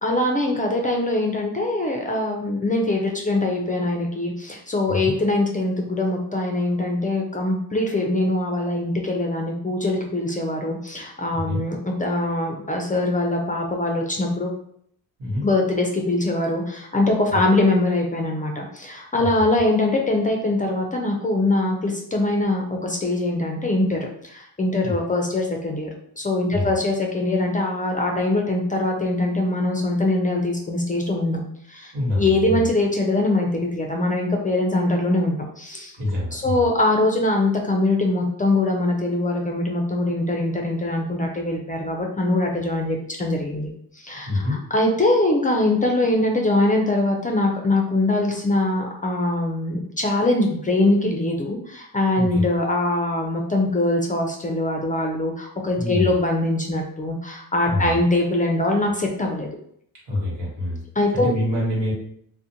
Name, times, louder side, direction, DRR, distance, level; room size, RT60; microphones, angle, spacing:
voice 1, 0.0-14.5 15.4-25.9 26.2-31.4 31.7-36.0 36.3-44.4 44.7-59.5 61.0-61.3, left 2 dB, 20° left, 1 dB, 0.4 m, -22 dB
voice 2, 31.9-32.7 36.0-36.7 44.3-44.6 52.2-52.4 55.8-56.1 57.6-58.0 60.1-60.9 61.1-61.9, left 1 dB, 80° right, -5 dB, 1.3 m, -26 dB
2.4 x 2.1 x 2.7 m, 0.67 s
cardioid pair, 75°, 41 cm